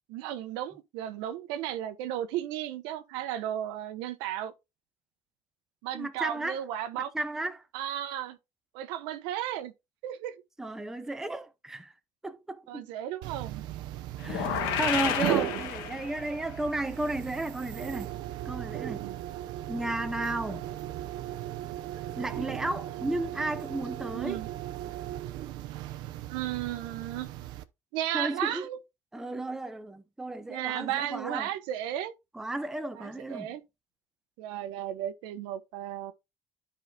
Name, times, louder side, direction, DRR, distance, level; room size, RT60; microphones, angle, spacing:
voice 1, 0.1-4.5 5.8-7.1 7.7-8.4 8.7-9.7 10.0-10.4 12.7-13.6 14.3-14.8 15.1-15.4 19.0-19.2 24.1-24.5 26.3-27.3 27.9-28.8 30.5-32.1 33.0-33.6 34.4-36.1, right 11 dB, 90° right, 1.0 m, -34 dB
voice 2, 5.9-6.6 7.0-7.6 10.6-11.9 12.2-12.9 14.2-18.1 18.4-19.1 19.7-20.7 22.2-24.4 28.1-28.7 29.1-31.5 32.3-33.6, right 2 dB, 5° right, 0.6 m, -34 dB
sound 1, 13.2-27.6, right 14 dB, 65° right, 0.7 m, -37 dB
sound 2, 14.2-16.4, left 9 dB, 80° left, 1.3 m, -31 dB
13.0 x 4.8 x 2.3 m
cardioid pair, 150°, 8 cm